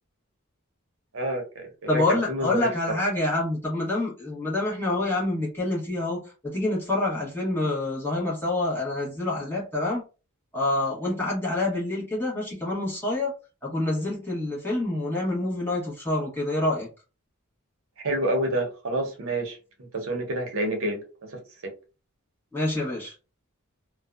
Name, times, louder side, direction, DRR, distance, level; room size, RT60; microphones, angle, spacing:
voice 1, 1.1-2.7 18.0-19.6 19.9-21.0 21.6-21.7, right 1 dB, 65° right, 0.7 m, -28 dB
voice 2, 1.9-10.0 10.5-13.3 13.6-16.9 22.5-23.1, left 2 dB, 10° left, 1.0 m, -27 dB
2.6 x 2.1 x 2.3 m
head